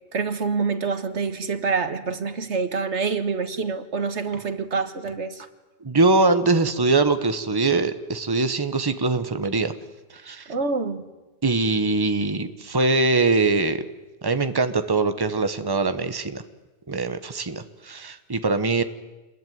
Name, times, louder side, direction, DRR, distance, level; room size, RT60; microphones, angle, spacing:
voice 1, 0.1-5.5 10.5-11.0, right 4 dB, 90° right, 10 dB, 1.8 m, -26 dB
voice 2, 5.8-9.7 10.1-10.5 11.4-13.8 14.2-16.4 16.9-18.8, right 3 dB, 20° right, 10 dB, 1.2 m, -22 dB
26.5 x 21.5 x 9.4 m, 1.1 s
omnidirectional pair, 1.1 m